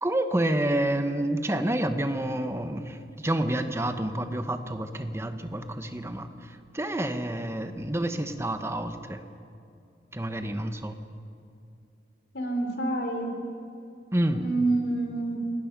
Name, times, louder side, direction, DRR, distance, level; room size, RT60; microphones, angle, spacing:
voice 1, 0.0-9.2 10.1-10.9 14.1-14.4, right 1 dB, 15° right, 8 dB, 1.1 m, -29 dB
voice 2, 12.3-13.3 14.3-15.4, right 2 dB, 75° left, 4 dB, 3.4 m, -27 dB
28.5 x 18.0 x 6.0 m, 2.5 s
head